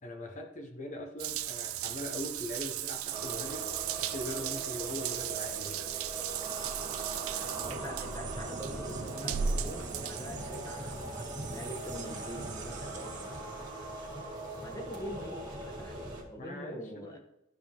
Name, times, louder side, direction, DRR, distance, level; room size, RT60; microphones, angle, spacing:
voice 1, 0.0-3.7 3.9-5.7 16.4-17.2, left 1 dB, 35° left, 3 dB, 1.0 m, -41 dB
Water tap faucet / Bathtub (filling or washing) / Drip, 1.2-11.0, right 9 dB, 85° right, 0.5 m, -37 dB
sound 1, 1.9-13.4, right 9 dB, 35° right, 0.7 m, -47 dB
sound 2, 3.1-16.2, right 1 dB, 20° right, 2.1 m, -41 dB
voice 2, 7.3-13.7 14.6-16.0 16.3-17.2, equal, 15° left, 3 dB, 1.1 m, -44 dB
12.5 x 4.9 x 3.5 m, 0.87 s
head